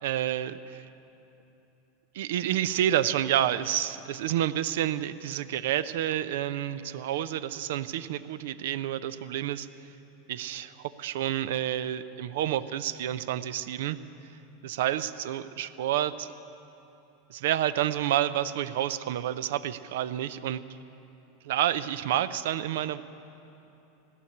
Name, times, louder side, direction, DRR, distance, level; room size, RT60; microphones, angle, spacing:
voice 1, 0.0-0.9 2.1-9.7 10.3-14.0 14.6-16.3 17.3-20.6 21.4-23.0, right 11 dB, 70° right, 15 dB, 0.5 m, -29 dB
16.5 x 6.7 x 9.9 m, 3.0 s
hypercardioid pair, 95°, 0 cm